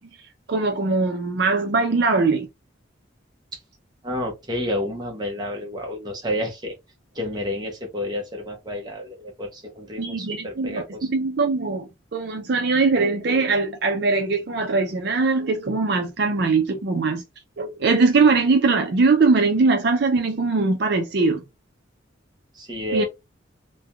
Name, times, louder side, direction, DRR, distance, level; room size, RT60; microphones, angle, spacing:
voice 1, 0.5-2.5 10.0-17.2 17.6-21.4 22.9-23.0, right 4 dB, 55° right, 0.5 m, -21 dB
voice 2, 4.0-6.7 7.1-11.1 22.5-23.1, left 1 dB, 20° right, 0.7 m, -30 dB
3.2 x 2.2 x 2.3 m
head